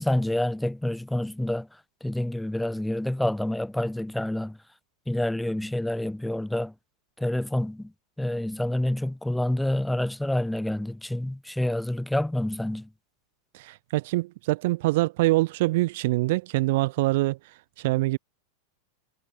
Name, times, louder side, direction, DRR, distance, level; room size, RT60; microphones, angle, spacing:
voice 1, 0.0-1.7 2.0-4.6 5.1-6.7 7.2-7.9 8.2-12.9, left 1 dB, 5° left, 5.4 m, -28 dB
voice 2, 13.5-17.4 17.8-18.2, right 20 dB, 50° right, 5.3 m, -24 dB
figure-of-eight pair, 90°, 0 cm